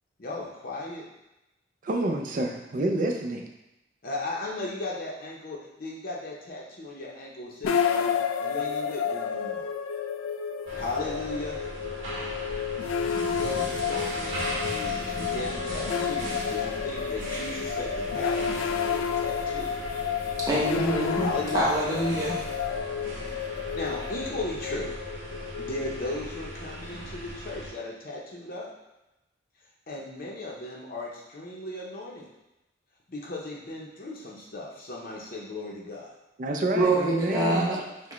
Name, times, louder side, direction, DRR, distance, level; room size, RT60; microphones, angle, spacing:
voice 1, 0.2-1.0 4.0-9.7 10.7-11.6 13.3-19.7 21.2-21.6 23.6-24.9 25.6-28.7 29.9-32.3 33.1-36.1, left 2 dB, 45° left, -3 dB, 0.6 m, -36 dB
voice 2, 1.8-3.5 36.4-37.7, right 2 dB, 40° right, 3 dB, 0.4 m, -28 dB
sound 1, 7.6-26.8, left 7 dB, 85° left, 0.3 m, -31 dB
sound 2, 10.7-27.7, right 1 dB, 70° right, 1.0 m, -38 dB
voice 3, 20.3-21.3 21.5-22.4 36.8-37.8, right 1 dB, 15° right, -6 dB, 0.9 m, -25 dB
5.9 x 2.1 x 3.0 m, 0.95 s
head